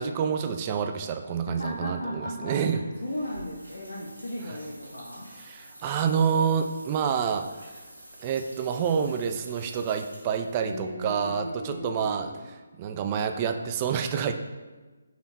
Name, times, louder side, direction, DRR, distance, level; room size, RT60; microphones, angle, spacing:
voice 1, 0.0-2.8 4.4-4.6 5.4-7.5 8.2-12.3 12.8-14.3, right 7 dB, 25° right, 6 dB, 0.3 m, -28 dB
voice 2, 1.5-5.3 10.6-12.4, left 1 dB, 70° left, -4 dB, 0.7 m, -36 dB
sound 1, 2.9-10.8, equal, 90° right, 1.2 m, -49 dB
4.2 x 2.9 x 4.2 m, 1.3 s
figure-of-eight pair, 145°, 0 cm